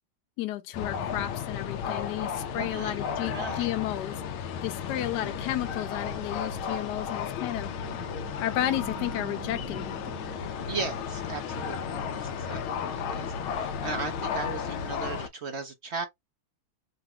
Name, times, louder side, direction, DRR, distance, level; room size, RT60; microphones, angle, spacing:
voice 1, 0.4-4.2 4.6-7.7 8.4-10.0, left 13 dB, 70° left, 1.2 m, -32 dB
sound 1, 0.7-15.3, left 7 dB, 90° left, 1.5 m, -34 dB
voice 2, 2.5-3.0 3.3-3.7 4.9-5.4 10.7-16.1, right 4 dB, 60° right, 0.7 m, -37 dB
sound 2, 7.1-12.7, right 14 dB, 85° right, 1.5 m, -47 dB
4.0 x 2.3 x 4.1 m
omnidirectional pair, 2.2 m